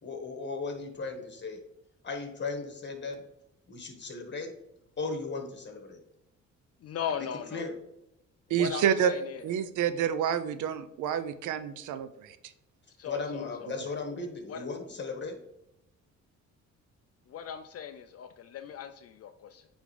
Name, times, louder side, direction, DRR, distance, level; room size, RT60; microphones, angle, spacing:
voice 1, 0.0-1.6 2.0-3.2 3.7-4.5 5.0-6.0 7.2-7.7 13.0-15.4, left 4 dB, 35° left, 4 dB, 1.6 m, -36 dB
voice 2, 6.8-7.7 8.5-9.4 13.0-13.7 14.5-14.7 17.3-19.7, left 8 dB, 55° left, 9 dB, 0.5 m, -38 dB
voice 3, 8.5-9.1 9.4-12.4, right 9 dB, 80° right, 12 dB, 0.6 m, -28 dB
8.8 x 3.5 x 3.3 m, 0.85 s
cardioid pair, 90°, 30 cm